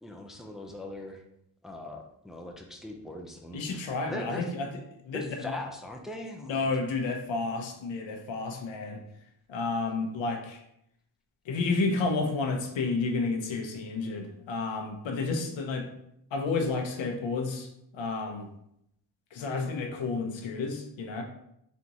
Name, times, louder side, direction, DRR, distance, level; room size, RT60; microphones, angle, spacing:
voice 1, 0.0-1.2 1.6-3.8 4.1-4.5 5.1-6.7, left 1 dB, ahead, 2 dB, 0.6 m, -40 dB
voice 2, 3.5-5.5 6.4-9.0 9.5-10.6 11.4-15.9 16.3-18.5 19.3-21.2, left 3 dB, 85° left, 3 dB, 0.8 m, -31 dB
4.0 x 3.4 x 2.9 m, 0.77 s
cardioid pair, 70°, 44 cm